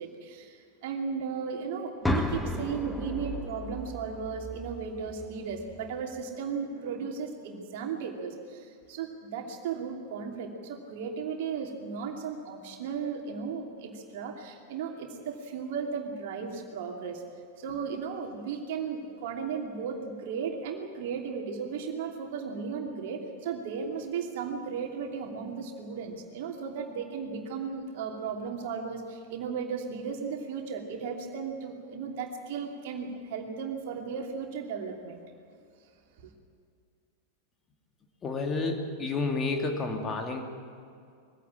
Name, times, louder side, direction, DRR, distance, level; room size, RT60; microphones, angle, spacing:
voice 1, 0.0-17.2 17.6-35.2 36.2-36.3, right 6 dB, 50° right, 2 dB, 2.9 m, -35 dB
sound 1, 2.0-6.0, left 1 dB, 5° left, 1.8 m, -34 dB
voice 2, 38.2-40.4, left 3 dB, 20° left, 3 dB, 2.6 m, -30 dB
22.0 x 16.0 x 8.8 m, 2.4 s
figure-of-eight pair, 90°, 0 cm